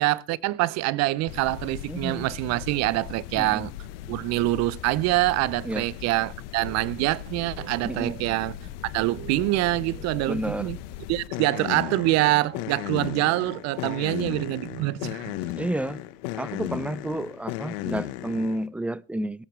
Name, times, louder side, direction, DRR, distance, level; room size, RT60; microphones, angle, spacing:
voice 1, 0.0-3.7 4.1-8.6 8.8-10.8 11.1-15.4, right 18 dB, 55° right, 0.8 m, -25 dB
sound 1, 1.3-18.7, left 14 dB, 65° left, 1.3 m, -37 dB
voice 2, 1.9-2.3 3.4-3.7 5.6-5.9 7.8-8.2 10.3-10.7 15.6-16.0 16.4-19.5, right 1 dB, 5° right, 0.6 m, -30 dB
23.5 x 8.8 x 3.3 m
hypercardioid pair, 75°, 31 cm